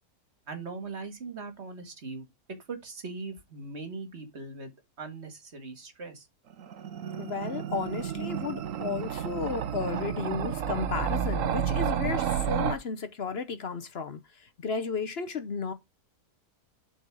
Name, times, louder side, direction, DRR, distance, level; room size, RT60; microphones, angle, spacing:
voice 1, 0.5-2.2 2.7-4.7 5.0-6.3, right 4 dB, 45° right, 1.9 m, -40 dB
sound 1, 6.5-12.8, right 8 dB, 60° right, 1.1 m, -31 dB
voice 2, 7.2-15.7, left 5 dB, 50° left, 1.0 m, -33 dB
7.4 x 4.1 x 4.8 m
omnidirectional pair, 1.6 m